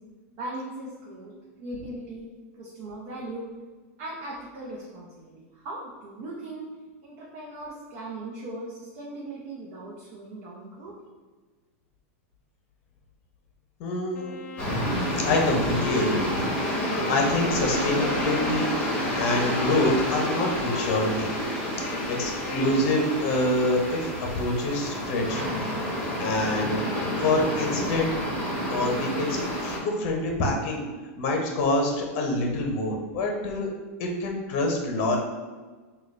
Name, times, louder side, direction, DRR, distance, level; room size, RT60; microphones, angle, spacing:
voice 1, 0.4-1.3 1.6-2.3 2.6-3.4 4.0-6.6 7.0-10.9, right 2 dB, 45° right, -4 dB, 0.7 m, -38 dB
voice 2, 13.8-14.3 15.2-16.3 16.9-21.3 22.1-24.1 24.3-25.7 26.2-26.8 27.2-28.1 28.7-30.9 31.2-33.7 34.0-35.2, left 1 dB, 45° left, 1 dB, 0.7 m, -26 dB
Wind instrument woodwind instrument, 14.1-18.8 19.5-23.4, left 4 dB, 90° left, 0.4 m, -38 dB
sound 1, 14.6-29.8, equal, 15° left, 1.1 m, -29 dB
3.7 x 2.3 x 3.2 m, 1.4 s
supercardioid pair, 150°, 8 cm